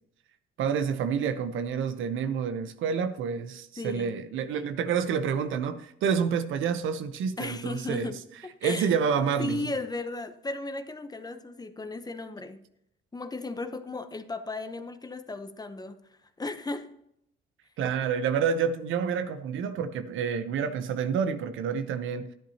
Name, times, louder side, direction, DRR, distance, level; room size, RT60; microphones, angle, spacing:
voice 1, 0.6-8.1 8.6-9.7 17.8-22.3, right 6 dB, 80° right, 0.8 m, -28 dB
voice 2, 3.8-4.1 7.4-8.2 8.6-8.9 9.4-12.6 13.1-16.0 16.4-16.9 18.0-18.1, left 2 dB, 20° left, 0.8 m, -35 dB
11.5 x 10.0 x 2.8 m
cardioid pair, 90°, 20 cm